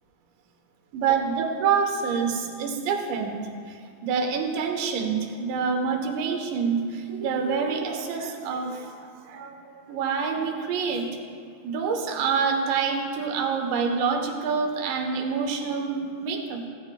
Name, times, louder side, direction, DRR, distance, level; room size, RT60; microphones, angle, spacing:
voice 1, 0.9-11.1 11.6-16.6, right 5 dB, 80° right, 3 dB, 3.5 m, -27 dB
23.0 x 16.0 x 2.4 m, 2.2 s
omnidirectional pair, 5.1 m